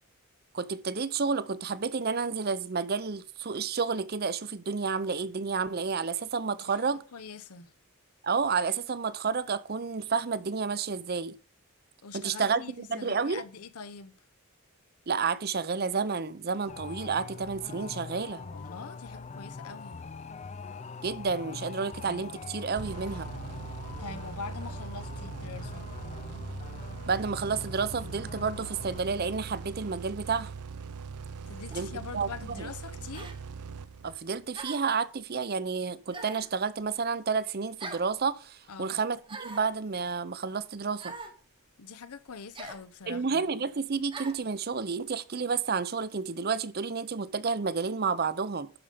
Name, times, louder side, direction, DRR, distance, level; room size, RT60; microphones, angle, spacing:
voice 1, 0.5-7.0 8.2-11.4 12.1-13.4 15.1-18.4 21.0-23.3 27.1-30.5 31.7-31.9 32.1-32.3 32.6-32.7 34.0-41.1 43.1-48.7, right 5 dB, 45° right, 0.6 m, -30 dB
voice 2, 6.6-7.7 12.0-14.2 18.4-20.0 24.0-25.9 31.5-33.3 38.7-39.0 41.8-43.5, left 5 dB, 85° left, 0.8 m, -43 dB
sound 1, 16.7-29.0, left 4 dB, 30° left, 0.4 m, -43 dB
sound 2, 22.8-34.4, right 5 dB, 90° right, 0.5 m, -41 dB
sound 3, 31.7-31.9 33.1-33.4 34.5-35.0 36.1-36.5 37.8-38.1 39.3-39.7 41.0-41.4 42.5-42.8 44.1-44.4, right 3 dB, 20° right, 1.0 m, -42 dB
11.5 x 5.3 x 5.1 m
head